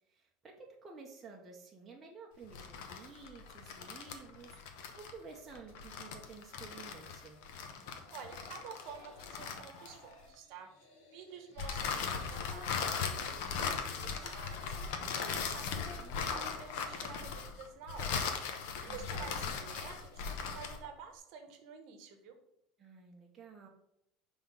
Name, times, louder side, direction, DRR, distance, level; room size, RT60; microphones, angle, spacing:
voice 1, 0.1-7.4 18.9-19.6 22.8-23.7, right 4 dB, 15° right, -1 dB, 0.7 m, -52 dB
sound 1, 2.4-10.2 11.6-20.9, left 6 dB, 65° left, 0.8 m, -39 dB
sound 2, 7.4-17.4, left 2 dB, 50° left, 1.8 m, -57 dB
voice 2, 8.1-10.7 11.1-18.2 18.8-22.4, right 6 dB, 50° right, 6 dB, 1.0 m, -50 dB
5.7 x 3.5 x 5.7 m, 0.81 s
cardioid pair, 170°, 0 cm